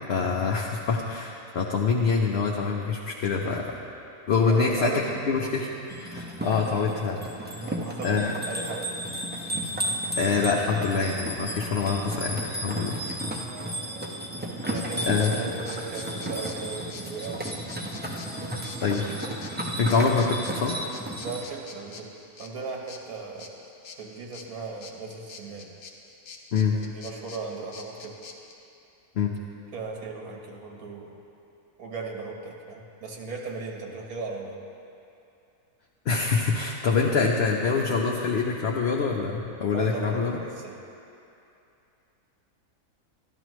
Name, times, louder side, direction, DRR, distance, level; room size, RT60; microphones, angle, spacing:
voice 1, 0.1-3.7 4.3-4.9 5.3-5.7 6.1-7.2 7.5-7.6 8.0-8.4 10.1-13.0 14.6-14.7 15.0-15.5 18.8-19.1 19.8-20.8 26.5-26.8 29.2-29.3 36.1-40.4, left 5 dB, 55° left, -1 dB, 0.8 m, -25 dB
voice 2, 4.4-5.2 7.7-9.0 12.7-13.5 14.7-17.7 19.8-20.0 21.2-22.1 22.4-23.5 24.0-25.7 26.7-28.2 29.7-31.2 31.8-34.6 39.7-40.8, right 4 dB, 90° right, 0 dB, 1.6 m, -37 dB
sound 1, 5.9-21.4, right 1 dB, 15° right, 0.4 m, -33 dB
sound 2, 14.7-28.5, left 5 dB, 75° left, 1.3 m, -46 dB
13.0 x 11.0 x 3.1 m, 2.7 s
omnidirectional pair, 1.5 m